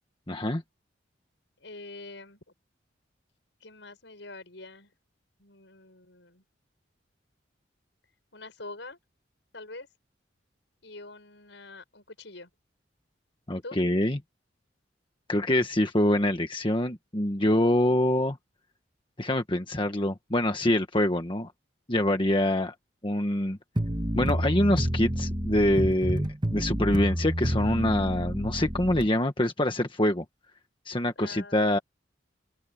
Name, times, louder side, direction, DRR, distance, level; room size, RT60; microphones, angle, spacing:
voice 1, 0.3-0.6 13.5-14.2 15.3-18.4 19.2-21.5 21.9-22.7 23.0-23.6 24.1-26.3 26.5-30.2 30.8-31.8, left 1 dB, 25° left, 1.5 m, -25 dB
voice 2, 1.6-2.4 3.6-4.9 5.4-6.4 8.3-9.0 9.5-9.9 10.8-12.5 13.6-13.8 31.2-31.8, left 2 dB, 70° left, 7.0 m, -45 dB
sound 1, 23.8-29.1, equal, 25° right, 1.9 m, -29 dB
open air
head